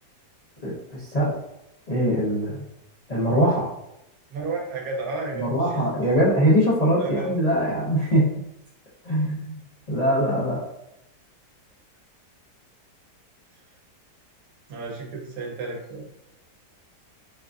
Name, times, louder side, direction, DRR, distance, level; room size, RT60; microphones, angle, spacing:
voice 1, 0.6-1.3 1.9-2.6 3.1-3.7 5.3-8.3 9.0-9.6 9.9-10.6, equal, 55° left, -8 dB, 0.4 m, -22 dB
voice 2, 4.3-5.8 7.0-7.4 14.7-16.1, right 3 dB, 65° right, 0 dB, 1.1 m, -32 dB
4.6 x 2.5 x 2.4 m, 0.84 s
omnidirectional pair, 1.8 m